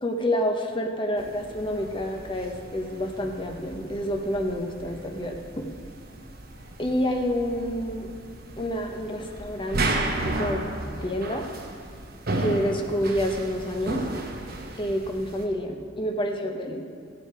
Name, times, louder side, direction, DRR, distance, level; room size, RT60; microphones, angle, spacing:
voice 1, 0.0-5.7 6.8-8.1 8.6-10.6 11.0-11.5 12.4-14.0 14.8-16.8, equal, 25° left, 2 dB, 0.9 m, -28 dB
sound 1, 1.2-15.4, right 2 dB, 50° right, 1.3 m, -34 dB
15.5 x 8.3 x 4.8 m, 2.3 s
head